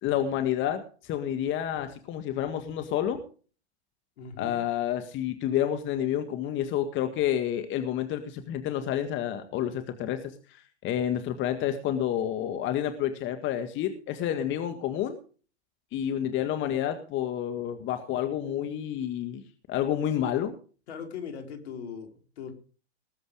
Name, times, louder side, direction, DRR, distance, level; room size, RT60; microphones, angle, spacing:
voice 1, 0.0-3.2 4.4-15.2 15.9-19.4 19.7-20.5, left 10 dB, 35° left, 8 dB, 1.7 m, -29 dB
voice 2, 4.2-4.6 20.9-22.5, left 6 dB, 70° left, 5 dB, 4.3 m, -39 dB
20.0 x 7.9 x 5.0 m, 0.39 s
hypercardioid pair, 115°, 34 cm